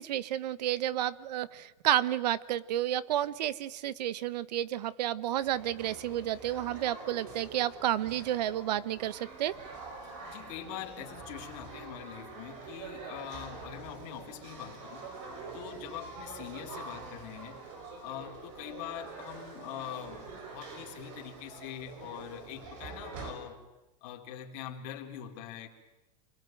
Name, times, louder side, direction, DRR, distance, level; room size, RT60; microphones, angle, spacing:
voice 1, 0.0-9.5, right 12 dB, 75° right, 19 dB, 1.1 m, -31 dB
sound 1, 5.4-23.3, right 4 dB, 50° right, 6.1 m, -46 dB
voice 2, 10.0-15.1 15.5-17.7 18.0-23.6 24.0-25.7, left 10 dB, 50° left, 2 dB, 3.9 m, -43 dB
28.5 x 21.0 x 9.2 m, 1.0 s
supercardioid pair, 155°, 21 cm